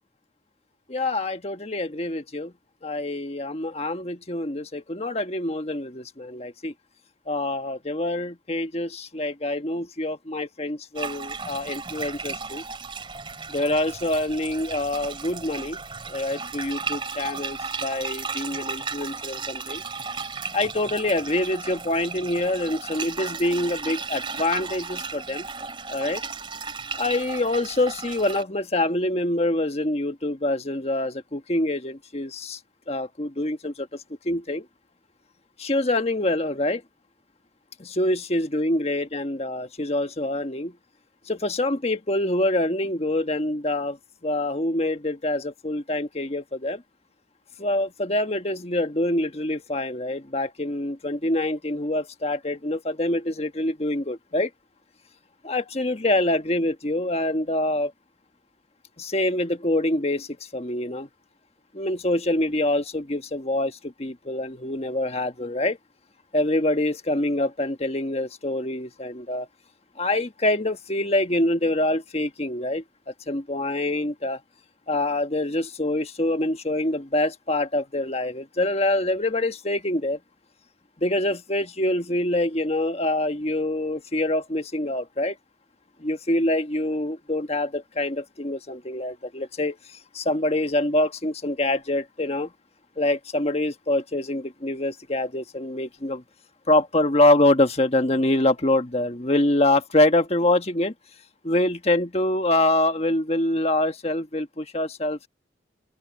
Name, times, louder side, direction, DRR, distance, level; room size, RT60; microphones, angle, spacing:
voice 1, 0.9-2.5 2.8-6.7 7.3-12.6 13.5-15.8 16.1-19.8 20.5-25.4 25.9-26.2 27.0-32.6 32.9-34.7 35.6-36.8 37.8-40.7 41.3-44.0 44.2-46.8 47.6-54.5 55.4-57.9 59.0-61.1 61.7-65.8 66.3-69.5 70.0-72.8 73.3-74.4 74.9-80.2 81.0-85.4 86.0-92.5 93.0-96.2 96.7-100.9 101.4-105.3, left 1 dB, 35° left, 1.4 m, -25 dB
sound 1, 11.0-28.4, right 5 dB, 30° right, 3.0 m, -34 dB
open air
head